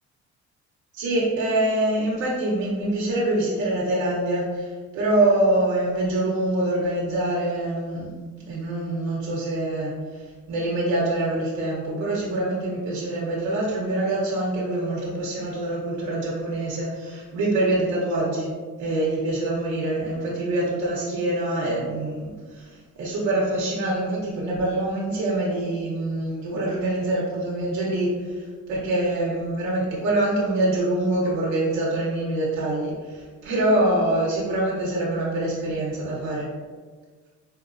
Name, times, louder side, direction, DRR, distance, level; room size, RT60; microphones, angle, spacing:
voice 1, 0.9-8.2 8.5-18.5 18.8-36.5, right 1 dB, 75° right, -5 dB, 0.9 m, -25 dB
4.3 x 2.9 x 2.5 m, 1.5 s
cardioid pair, 165°, 30 cm